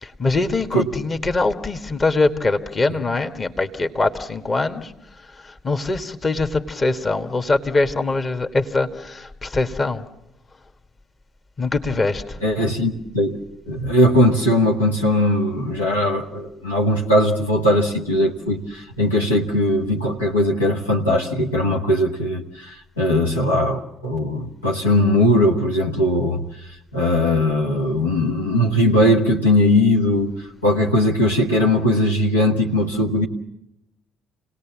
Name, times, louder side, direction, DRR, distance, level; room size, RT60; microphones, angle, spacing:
voice 1, 0.0-4.9 5.4-10.0 11.6-12.4, left 3 dB, 35° left, 7 dB, 1.7 m, -23 dB
voice 2, 12.4-13.4 13.6-26.4 26.9-30.3 30.6-33.3, left 1 dB, 85° left, -1 dB, 1.3 m, -19 dB
28.5 x 18.5 x 7.4 m, 0.86 s
figure-of-eight pair, 45°, 0 cm